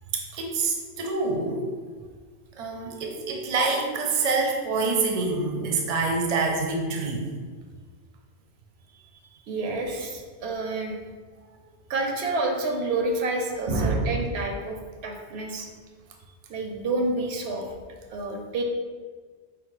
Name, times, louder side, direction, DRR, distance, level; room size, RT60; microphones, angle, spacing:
voice 1, 0.1-1.7 2.6-7.3 13.7-14.2, right 3 dB, 45° right, 1 dB, 0.6 m, -26 dB
voice 2, 9.3-10.9 11.9-15.7 16.5-17.7 18.1-18.6, right 2 dB, 80° right, 2 dB, 0.9 m, -29 dB
4.8 x 2.1 x 4.6 m, 1.5 s
omnidirectional pair, 1.1 m